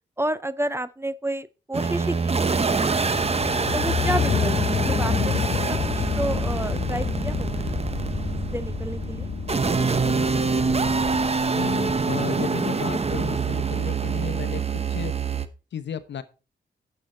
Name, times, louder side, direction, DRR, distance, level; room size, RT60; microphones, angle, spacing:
voice 1, 0.2-3.3 3.7-5.3 5.6-7.8 8.5-9.3, right 1 dB, 15° right, 0.6 m, -31 dB
sound 1, 1.7-15.5, right 4 dB, 35° right, 0.9 m, -25 dB
sound 2, 3.0-11.3, left 7 dB, 50° left, 0.5 m, -28 dB
voice 2, 11.4-15.1 15.7-16.2, left 8 dB, 75° left, 0.9 m, -33 dB
9.1 x 6.9 x 4.3 m
cardioid pair, 65°, 18 cm